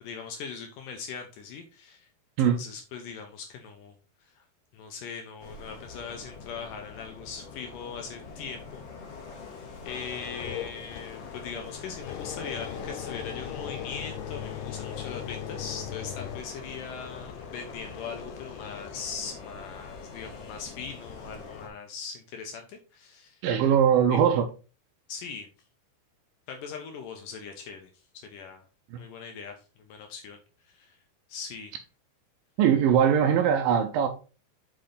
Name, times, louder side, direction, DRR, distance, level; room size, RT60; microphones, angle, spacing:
voice 1, 0.0-2.1 2.4-3.9 4.4-4.5 4.7-8.8 9.9-23.4 24.1-24.2 25.1-25.5 26.5-27.9 28.3-28.6 29.0-30.4 30.7-31.0 31.3-31.7, left 6 dB, 75° left, 2.1 m, -40 dB
sound 1, 5.4-21.7, left 4 dB, 50° left, 2.5 m, -44 dB
sound 2, 9.9-20.8 21.3-21.6, left 10 dB, 90° left, 2.9 m, -40 dB
voice 2, 23.4-24.4 28.9-29.0 32.6-34.1, right 8 dB, 75° right, 2.2 m, -21 dB
6.9 x 5.4 x 3.8 m
omnidirectional pair, 4.6 m